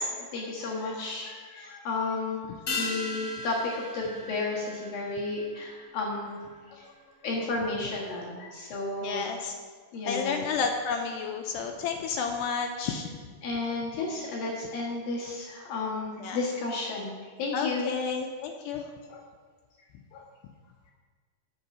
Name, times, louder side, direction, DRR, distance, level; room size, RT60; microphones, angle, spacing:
voice 1, 0.2-6.3 6.8-6.9 7.2-9.4 9.9-10.4 13.4-17.9, left 3 dB, 60° left, -4 dB, 2.9 m, -32 dB
sound 1, 2.7-7.4 7.6-7.7, left 3 dB, 40° left, 3.0 m, -38 dB
voice 2, 9.0-9.5 10.1-13.1 16.2-16.4 17.5-18.8 19.1-19.2 20.1-20.2, left 5 dB, 85° left, 3 dB, 2.5 m, -31 dB
8.3 x 7.8 x 5.9 m, 1.5 s
omnidirectional pair, 5.3 m